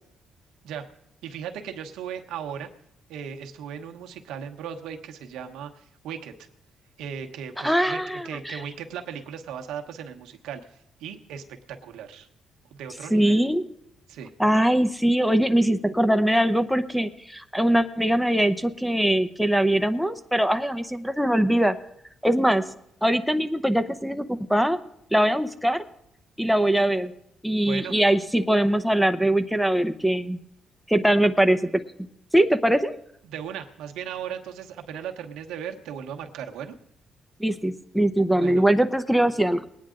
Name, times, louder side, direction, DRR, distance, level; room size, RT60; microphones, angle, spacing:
voice 1, 1.2-2.7 3.1-6.5 7.0-8.0 8.2-10.6 11.0-12.3 12.7-13.4 14.1-14.3 27.6-27.9 33.2-36.8 38.3-38.7, right 8 dB, 90° right, 5 dB, 1.1 m, -37 dB
voice 2, 7.6-8.6 13.1-13.6 14.4-21.8 22.2-22.6 23.0-24.8 25.1-25.9 26.4-27.1 27.4-30.4 30.9-31.8 32.3-33.0 37.4-39.7, right 1 dB, ahead, 7 dB, 0.8 m, -22 dB
20.0 x 9.4 x 3.8 m, 0.74 s
cardioid pair, 90°, 0 cm